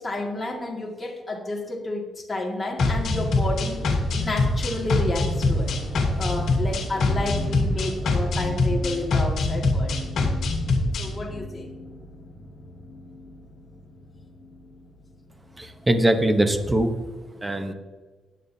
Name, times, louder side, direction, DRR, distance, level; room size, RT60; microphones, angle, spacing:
voice 1, 0.0-5.7 6.2-9.9 11.0-11.7, left 2 dB, 20° left, -2 dB, 1.9 m, -31 dB
sound 1, 2.8-11.1, left 2 dB, 65° left, 2.3 m, -23 dB
sound 2, 2.9-16.3, left 1 dB, 35° left, 2.5 m, -39 dB
Squeak, 3.3-9.6 10.4-10.5, right 4 dB, 55° right, 1.1 m, -43 dB
voice 2, 15.6-16.9 17.4-17.7, right 1 dB, 15° right, 7 dB, 0.9 m, -21 dB
16.0 x 9.7 x 2.7 m, 1.3 s
cardioid pair, 150°, 0 cm